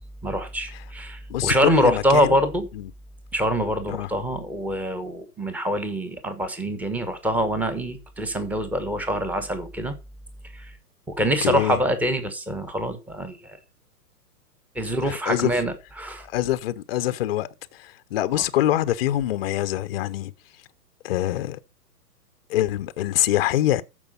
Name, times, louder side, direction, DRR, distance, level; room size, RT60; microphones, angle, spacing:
voice 1, 0.2-2.7 3.3-9.9 10.5-10.7 11.1-13.6 14.7-16.3 18.3-18.4, equal, 5° right, 1.0 m, -25 dB
voice 2, 1.3-2.4 2.7-2.9 3.9-4.1 11.2-11.8 15.0-15.5 16.2-20.6 21.0-21.6 22.5-23.8, left 13 dB, 40° left, 0.7 m, -25 dB
13.5 x 5.1 x 5.4 m
figure-of-eight pair, 120°, 48 cm